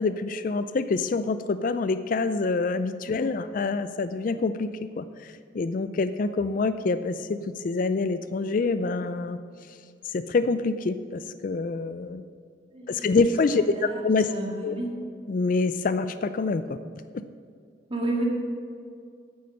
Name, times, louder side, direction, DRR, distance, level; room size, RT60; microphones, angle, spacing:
voice 1, 0.0-4.7 5.0-7.4 7.6-9.4 10.1-12.2 12.9-14.3 14.6-14.8 15.3-16.8, left 3 dB, 45° left, 12 dB, 0.3 m, -26 dB
voice 2, 13.5-14.9 17.9-18.2, right 1 dB, 30° right, -1 dB, 1.9 m, -32 dB
9.4 x 8.5 x 6.5 m, 2.3 s
head